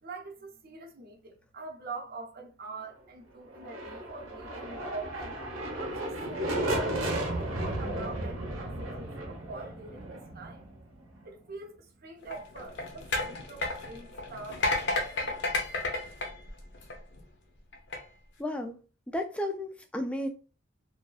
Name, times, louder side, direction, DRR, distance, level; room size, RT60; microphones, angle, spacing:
voice 1, 0.0-5.3 5.8-10.6 11.0-15.6 16.0-16.1, right 3 dB, 50° right, 0.6 m, -44 dB
sound 1, 3.5-11.3, right 1 dB, 85° right, 0.8 m, -34 dB
sound 2, 12.2-17.2 17.7-18.0, left 2 dB, 60° left, 0.5 m, -32 dB
voice 2, 18.4-18.8 19.1-20.3, left 1 dB, 5° left, 0.3 m, -33 dB
2.6 x 2.3 x 2.3 m
head